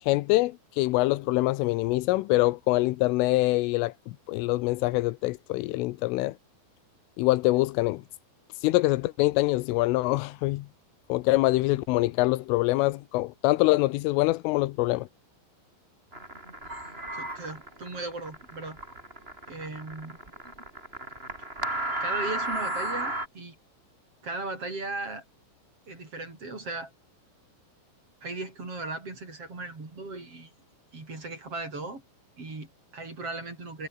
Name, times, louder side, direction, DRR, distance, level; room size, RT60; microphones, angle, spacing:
voice 1, 0.0-6.4 7.2-8.0 8.6-10.7 11.1-15.1, left 20 dB, 85° left, 3.4 m, -25 dB
sound 1, 16.1-23.3, right 1 dB, 10° right, 5.9 m, -34 dB
voice 2, 17.1-18.8 19.5-20.2 22.0-23.6 24.2-25.2 25.9-26.9 28.2-30.5 30.9-32.0 32.4-33.9, right 3 dB, 30° right, 6.6 m, -37 dB
omnidirectional pair, 5.6 m